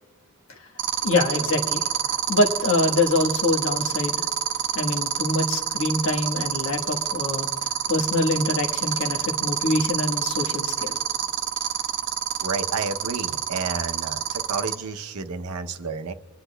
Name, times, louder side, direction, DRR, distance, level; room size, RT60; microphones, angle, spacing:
sound 1, 0.8-14.7, right 10 dB, 55° right, 0.8 m, -26 dB
voice 1, 1.0-1.9 2.3-4.2 4.7-7.5 7.9-10.9, left 2 dB, 60° left, 1 dB, 1.3 m, -24 dB
voice 2, 12.4-16.1, right 4 dB, 85° right, 8 dB, 0.7 m, -31 dB
25.5 x 10.0 x 2.2 m, 1.5 s
head